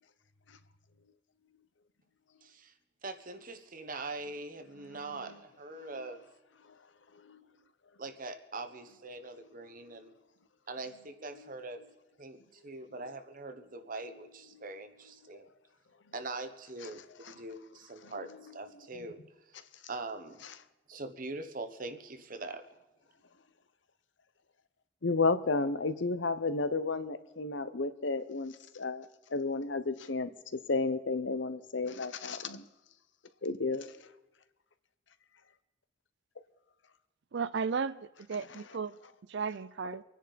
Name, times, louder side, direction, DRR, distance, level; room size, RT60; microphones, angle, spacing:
voice 1, 2.4-2.7 3.0-6.2 8.0-10.1 10.7-11.8 12.2-15.5 16.1-19.2 19.9-20.4 20.9-22.7, right 3 dB, 45° right, 9 dB, 1.1 m, -42 dB
voice 2, 4.9-5.4 5.8-6.1 7.2-7.4 11.3-11.5 14.5-14.7 17.3-17.4 18.0-18.1 25.0-30.3 30.7-32.6 33.4-33.9, left 3 dB, 65° left, 12 dB, 0.9 m, -32 dB
voice 3, 37.3-38.9 39.3-40.0, right 5 dB, 60° right, 16 dB, 0.5 m, -34 dB
25.5 x 10.0 x 4.2 m, 1.0 s
head